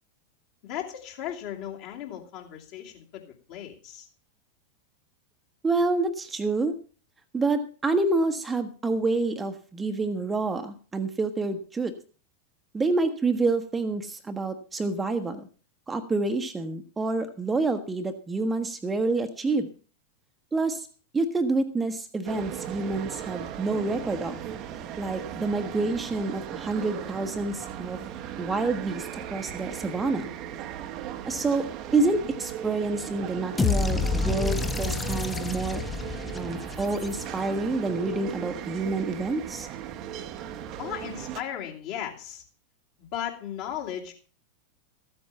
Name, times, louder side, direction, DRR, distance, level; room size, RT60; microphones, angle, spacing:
voice 1, 0.6-4.1 40.8-42.4 43.0-44.1, left 10 dB, 45° left, 0 dB, 2.6 m, -36 dB
voice 2, 5.6-6.7 7.3-11.9 12.7-15.4 15.9-19.7 20.5-20.9 21.1-24.4 25.0-28.0 28.4-30.3 31.2-35.8 36.3-39.7, right 3 dB, 15° right, 6 dB, 1.1 m, -28 dB
sound 1, 22.2-41.4, right 10 dB, 40° right, 1.0 m, -37 dB
sound 2, 33.6-37.7, left 4 dB, 15° left, 0.8 m, -29 dB
13.5 x 8.7 x 5.6 m, 0.38 s
figure-of-eight pair, 90°, 0 cm